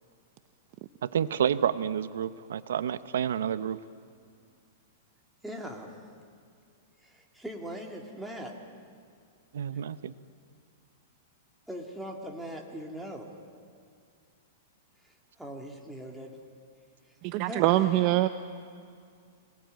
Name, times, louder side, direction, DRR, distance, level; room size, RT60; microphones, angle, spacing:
voice 1, 1.0-3.8 9.5-10.1, right 9 dB, 85° right, 14 dB, 0.8 m, -29 dB
voice 2, 5.4-5.9 7.0-8.5 11.7-13.3 15.4-16.3 17.5-17.7, equal, ahead, -1 dB, 2.4 m, -40 dB
voice 3, 17.2-18.3, right 15 dB, 35° right, 10 dB, 0.7 m, -23 dB
26.5 x 19.0 x 9.2 m, 2.3 s
supercardioid pair, 160°, 0 cm